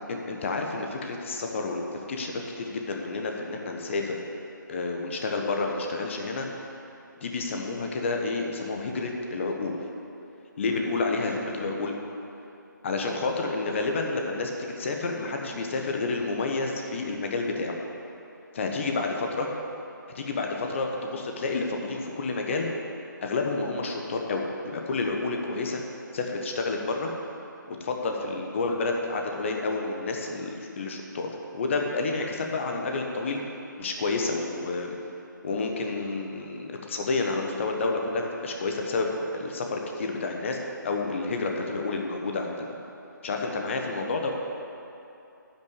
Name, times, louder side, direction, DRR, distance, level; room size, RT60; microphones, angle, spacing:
voice 1, 0.1-4.2 4.7-6.5 7.2-9.8 10.6-11.9 12.8-17.8 18.5-19.5 20.1-22.7 23.2-25.8 26.1-27.1 27.7-33.4 33.8-34.9 35.4-40.6 40.8-42.7 43.2-44.3, left 3 dB, 35° left, 2 dB, 1.1 m, -29 dB
10.0 x 6.1 x 8.2 m, 2.8 s
figure-of-eight pair, 150°, 11 cm